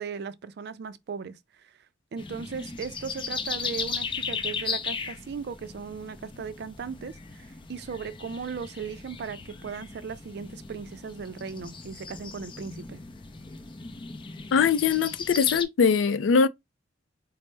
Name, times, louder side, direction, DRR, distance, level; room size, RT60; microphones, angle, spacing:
voice 1, 0.0-1.7 2.1-13.0, right 6 dB, 60° right, 0.3 m, -37 dB
sound 1, 2.2-15.7, left 5 dB, 25° left, 0.4 m, -37 dB
voice 2, 14.5-16.5, left 6 dB, 85° left, 0.4 m, -22 dB
4.2 x 2.0 x 3.2 m
head